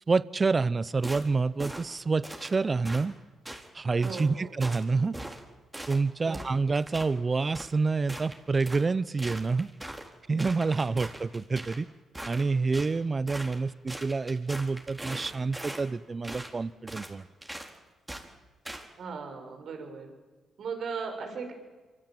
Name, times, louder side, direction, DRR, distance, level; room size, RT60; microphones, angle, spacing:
voice 1, 0.1-3.1 3.7-5.2 5.9-9.7 10.3-11.9 12.3-17.2, right 4 dB, 35° right, 19 dB, 0.8 m, -28 dB
sound 1, 1.0-1.3 1.6-1.9 2.2-2.6 2.9-3.0 3.5-3.7 4.0-4.3 4.6-4.8 5.1-5.4 5.7-6.0 6.3-7.1 7.5-7.7 8.1-8.9 9.2-10.1 10.4-11.8 12.1-12.9 13.3-13.6 13.9-15.9 16.2-16.5 16.9-17.1 17.4-17.7 18.1-18.3 18.7-18.9, right 1 dB, 15° right, 4.5 m, -41 dB
voice 2, 4.0-4.5 6.3-6.4 19.0-20.1 20.6-21.5, right 5 dB, 65° right, 5 dB, 6.7 m, -37 dB
26.0 x 25.0 x 9.1 m, 1.3 s
supercardioid pair, 60°, 0 cm